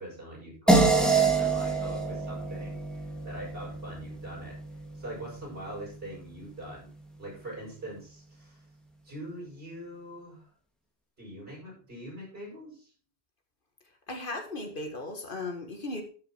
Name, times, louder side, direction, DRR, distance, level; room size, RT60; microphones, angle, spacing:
voice 1, 0.0-4.5 4.9-6.9 7.2-8.6 9.0-10.5 11.2-12.9, right 1 dB, 60° right, -3 dB, 7.0 m, -42 dB
sound 1, 0.7-5.4, right 3 dB, ahead, 2.1 m, -26 dB
voice 2, 14.1-16.0, left 2 dB, 55° left, 5 dB, 1.8 m, -36 dB
12.5 x 6.7 x 4.4 m, 0.40 s
omnidirectional pair, 1.1 m